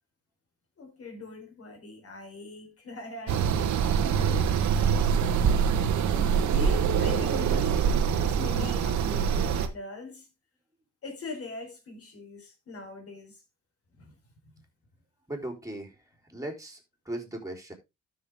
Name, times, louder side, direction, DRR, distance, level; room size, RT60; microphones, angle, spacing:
voice 1, 0.8-4.5 6.0-10.3 11.0-13.4 13.9-14.2, left 3 dB, 50° left, 4.1 m, -42 dB
sound 1, 3.3-9.7, right 7 dB, 70° right, 1.3 m, -24 dB
voice 2, 15.3-16.0 16.3-16.8 17.1-17.7, right 1 dB, 10° right, 3.8 m, -37 dB
12.5 x 6.4 x 3.6 m
cardioid pair, 90°, 30 cm